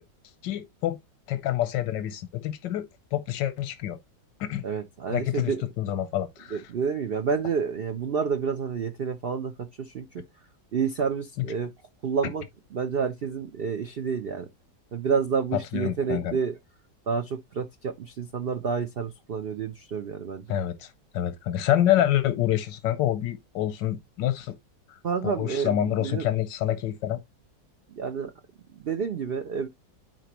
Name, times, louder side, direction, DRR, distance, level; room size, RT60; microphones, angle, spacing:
voice 1, 0.4-1.0 1.3-4.0 4.4-4.6 5.1-6.6 11.4-11.5 15.5-16.4 20.5-24.6 25.2-27.2, left 12 dB, 85° left, 1.4 m, -27 dB
voice 2, 4.6-5.6 6.5-10.1 10.7-11.7 12.0-12.4 12.7-14.5 14.9-16.6 17.1-20.4 25.0-26.3 27.9-28.3 28.7-29.7, right 6 dB, 90° right, 0.5 m, -29 dB
9.3 x 4.5 x 2.9 m
omnidirectional pair, 1.9 m